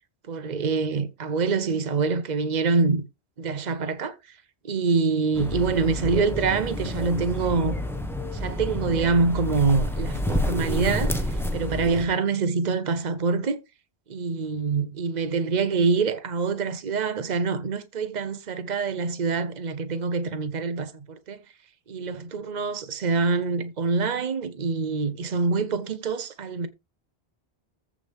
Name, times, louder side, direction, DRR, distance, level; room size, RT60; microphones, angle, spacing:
voice 1, 0.3-3.0 3.4-4.1 4.6-7.9 8.3-11.1 11.5-13.6 14.1-21.4 21.9-26.7, right 4 dB, 45° right, 1.0 m, -25 dB
sound 1, 5.3-12.1, left 1 dB, ahead, 1.3 m, -29 dB
14.5 x 5.0 x 3.6 m
omnidirectional pair, 1.1 m